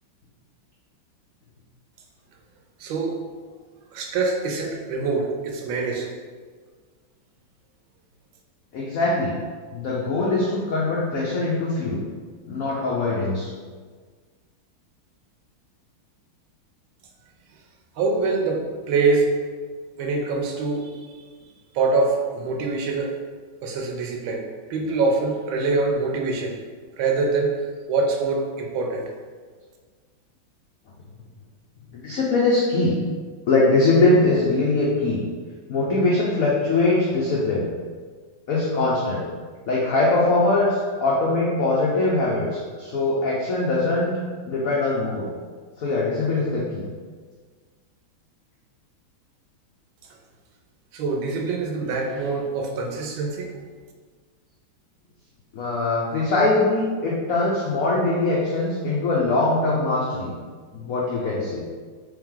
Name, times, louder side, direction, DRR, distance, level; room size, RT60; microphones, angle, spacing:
voice 1, 2.8-3.2 3.9-6.1 18.0-19.3 20.0-21.0 21.7-23.1 23.6-24.4 24.7-26.5 27.0-27.6 27.9-29.1 50.9-53.5, right 3 dB, 80° right, 2 dB, 1.4 m, -24 dB
voice 2, 8.7-9.4 9.7-12.1 12.5-13.5 31.9-33.0 33.5-35.2 35.7-37.7 38.5-39.3 39.7-44.1 44.5-45.3 45.8-46.9 55.5-60.3 60.7-61.6, left 2 dB, 80° left, -5 dB, 0.7 m, -22 dB
3.5 x 3.2 x 3.6 m, 1.5 s
omnidirectional pair, 2.3 m